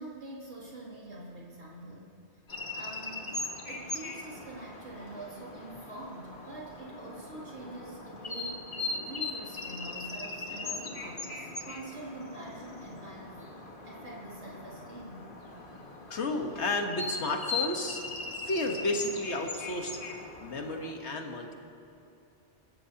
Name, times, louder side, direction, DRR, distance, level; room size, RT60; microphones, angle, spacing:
voice 1, 0.0-2.1 2.7-8.8 9.0-13.4 13.8-15.3, right 2 dB, 80° right, -6 dB, 3.0 m, -45 dB
sound 1, 2.5-20.9, left 3 dB, 50° left, 1.5 m, -40 dB
voice 2, 16.1-18.0 18.4-20.0 20.4-21.5, left 2 dB, 80° left, 3 dB, 1.6 m, -32 dB
28.0 x 14.5 x 2.9 m, 2.8 s
omnidirectional pair, 1.1 m